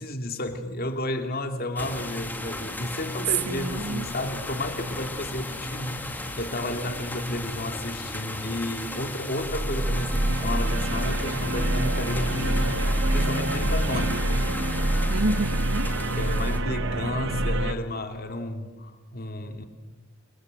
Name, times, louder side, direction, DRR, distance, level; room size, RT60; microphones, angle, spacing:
voice 1, 0.0-14.2 16.2-19.6, left 1 dB, 40° left, 2.8 m, -32 dB
sound 1, 1.8-16.6, left 2 dB, 10° left, 2.0 m, -36 dB
sound 2, 3.5-11.1, left 2 dB, 70° left, 1.9 m, -44 dB
voice 2, 3.5-4.1 13.9-14.6 15.1-16.0, right 2 dB, 85° right, 1.6 m, -31 dB
sound 3, 9.4-17.7, right 1 dB, 55° right, 1.4 m, -26 dB
29.0 x 25.0 x 7.8 m
head